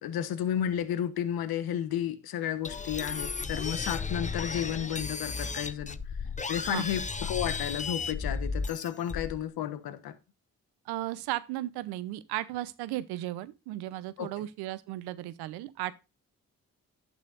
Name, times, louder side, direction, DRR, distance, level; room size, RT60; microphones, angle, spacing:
voice 1, 0.0-6.0 6.5-10.1 14.2-14.4, left 10 dB, 75° left, 1.1 m, -32 dB
sound 1, 2.6-9.4, left 4 dB, 20° left, 0.8 m, -34 dB
voice 2, 10.9-15.9, right 15 dB, 85° right, 0.8 m, -35 dB
11.5 x 8.7 x 2.5 m
hypercardioid pair, 45°, 37 cm